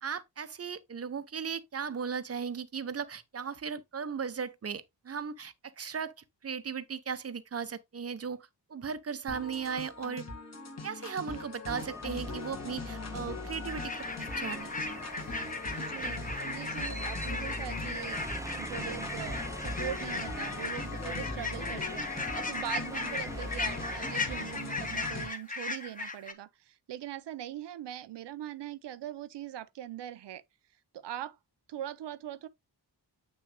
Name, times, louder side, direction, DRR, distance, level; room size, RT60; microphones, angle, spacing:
voice 1, 0.0-6.1 6.4-8.4 8.7-10.2 10.8-13.9 14.2-14.7, right 6 dB, 35° right, 0.8 m, -37 dB
sound 1, 9.3-25.3, left 3 dB, 40° left, 1.8 m, -40 dB
sound 2, 11.7-25.3, right 2 dB, 10° right, 0.4 m, -45 dB
sound 3, 13.7-26.3, left 3 dB, 20° left, 1.2 m, -37 dB
voice 2, 15.8-18.3 18.5-30.4 30.9-31.4 31.7-32.5, right 11 dB, 90° right, 0.6 m, -41 dB
8.4 x 6.1 x 2.2 m
wide cardioid pair, 100°, 41 cm